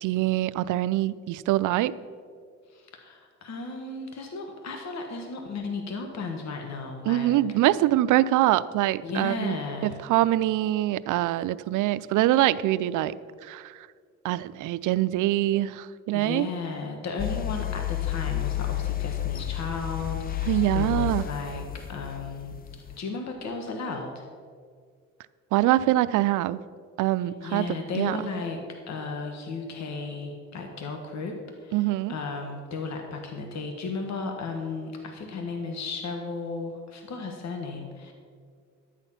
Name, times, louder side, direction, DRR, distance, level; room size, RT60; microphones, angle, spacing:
voice 1, 0.0-1.9 7.1-9.6 9.8-13.1 13.4-13.7 14.2-16.5 20.5-21.2 25.5-26.6 27.0-28.2 31.7-32.1, right 15 dB, 85° right, 16 dB, 0.5 m, -24 dB
voice 2, 2.7-7.3 9.0-10.0 16.1-22.5 23.0-24.3 27.2-38.1, left 4 dB, 65° left, 3 dB, 1.5 m, -35 dB
sound 1, 17.2-23.0, left 14 dB, 30° left, 0.4 m, -31 dB
12.0 x 9.0 x 5.7 m, 2.1 s
cardioid pair, 90°, 30 cm